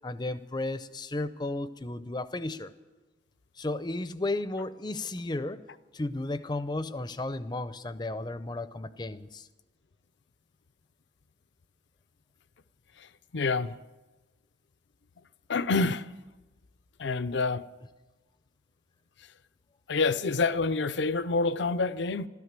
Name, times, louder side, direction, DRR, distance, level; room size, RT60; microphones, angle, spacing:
voice 1, 0.0-2.7 3.6-5.6 5.9-9.5, left 2 dB, 20° left, 0.5 m, -34 dB
voice 2, 13.3-13.8 15.5-16.1 17.0-17.6 19.9-22.3, left 3 dB, 65° left, 0.5 m, -27 dB
14.0 x 13.5 x 7.4 m
head